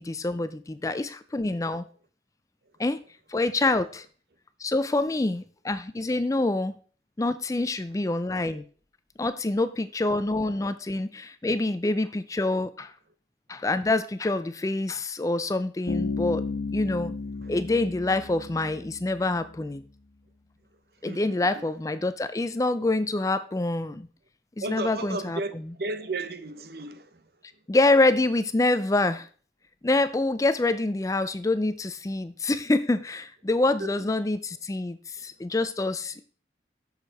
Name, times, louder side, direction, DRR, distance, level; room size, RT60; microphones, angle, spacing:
voice 1, 0.0-1.8 2.8-3.0 3.3-4.1 4.6-6.8 7.2-8.6 9.2-12.9 13.5-16.5 16.7-17.1 17.5-19.8 21.0-24.1 24.7-25.6 27.7-29.3 29.8-36.2, left 2 dB, 20° left, 0.4 m, -26 dB
Bass guitar, 15.9-19.5, left 3 dB, 85° left, 1.3 m, -33 dB
voice 2, 21.0-21.6 24.6-27.2 33.8-33.9, right 2 dB, 55° right, 0.8 m, -34 dB
7.8 x 6.5 x 4.7 m
head